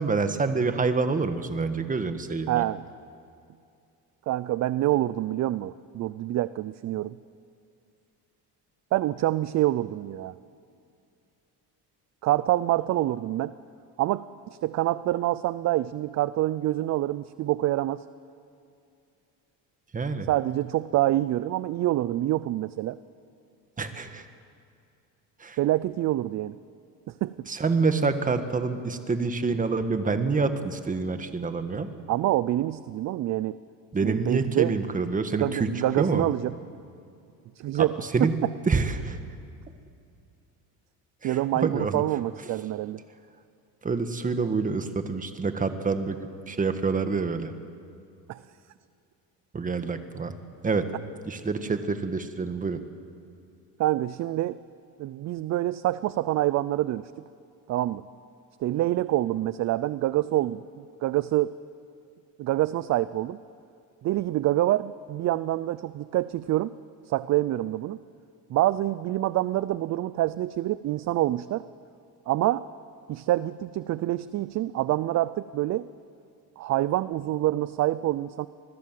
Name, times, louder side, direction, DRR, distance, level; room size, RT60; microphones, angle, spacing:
voice 1, 0.0-2.6 19.9-20.3 23.8-24.2 25.4-25.6 27.5-31.9 33.9-35.7 36.0-36.2 37.7-38.3 38.7-39.2 41.2-42.0 43.8-46.2 46.5-47.5 49.5-50.3 50.6-50.9 51.3-52.8, right 4 dB, 20° right, 8 dB, 1.6 m, -27 dB
voice 2, 2.5-2.8 4.3-7.2 8.9-10.3 12.2-13.5 14.0-14.3 14.6-18.0 20.3-23.0 25.6-26.6 27.2-27.5 32.1-33.6 34.0-34.7 35.4-36.5 37.6-38.5 41.2-43.0 48.3-48.4 53.8-54.6 55.0-57.3 57.7-58.0 58.6-60.6 61.0-61.5 62.4-63.4 64.0-66.7 67.1-68.0 68.5-71.7 72.3-72.7 73.1-75.9 76.6-78.5, right 15 dB, 45° right, 16 dB, 0.5 m, -26 dB
26.0 x 20.5 x 7.6 m, 2.5 s
cardioid pair, 130°, 40 cm